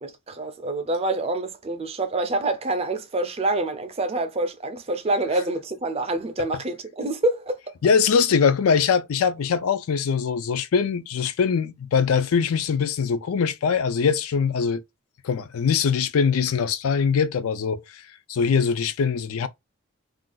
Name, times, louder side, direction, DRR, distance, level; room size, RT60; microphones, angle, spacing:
voice 1, 0.0-7.6, right 2 dB, 25° right, 0.4 m, -26 dB
voice 2, 7.8-14.8 15.2-18.0 18.3-19.5, left 6 dB, 70° left, 0.4 m, -22 dB
2.5 x 2.3 x 3.7 m
head